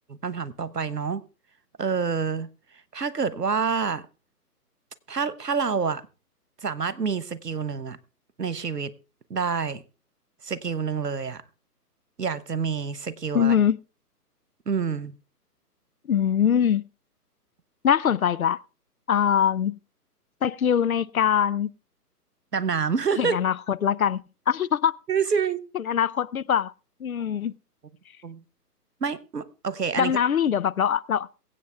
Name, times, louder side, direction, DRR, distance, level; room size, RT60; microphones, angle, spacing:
voice 1, 0.1-1.2 1.8-2.5 2.9-4.0 5.1-6.0 6.6-8.0 8.4-8.9 9.3-9.8 10.4-11.4 12.2-13.6 14.7-15.1 22.5-23.4 25.1-25.6 28.2-28.4 29.0-30.2, right 6 dB, 80° right, 1.3 m, -27 dB
voice 2, 13.3-13.8 16.1-16.8 17.8-18.6 19.1-19.7 20.4-21.7 23.2-23.5 23.8-24.2 24.5-24.9 25.9-26.7 27.0-27.5 30.0-31.3, left 8 dB, 60° left, 0.6 m, -22 dB
23.0 x 8.4 x 3.4 m
figure-of-eight pair, 135°, 48 cm